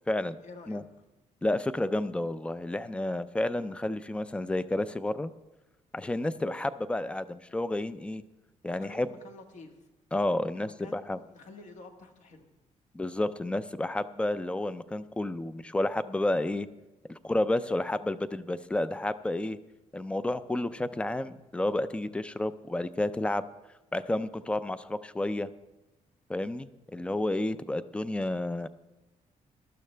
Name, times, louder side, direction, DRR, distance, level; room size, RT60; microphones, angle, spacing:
voice 1, 0.4-0.8 8.7-9.8 10.6-12.5, left 3 dB, 65° left, 4 dB, 1.6 m, -49 dB
voice 2, 1.4-5.3 5.9-8.2 8.6-9.1 10.1-11.2 12.9-16.7 17.2-19.6 19.9-23.5 23.9-25.5 26.3-28.7, left 1 dB, 10° left, 14 dB, 0.3 m, -30 dB
18.5 x 12.5 x 3.3 m, 1.0 s
cardioid pair, 170°, 13 cm